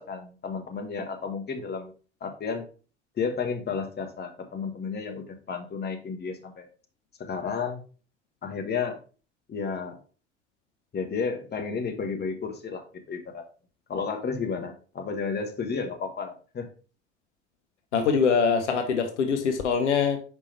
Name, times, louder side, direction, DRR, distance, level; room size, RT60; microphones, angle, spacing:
voice 1, 0.0-1.9 2.2-2.7 3.2-6.7 7.2-7.8 8.4-9.0 9.5-10.0 10.9-13.4 13.9-16.7, left 5 dB, 30° left, 1.3 m, -32 dB
voice 2, 17.9-20.2, left 6 dB, 80° left, 0.9 m, -23 dB
5.4 x 5.3 x 3.3 m
figure-of-eight pair, 65°, 34 cm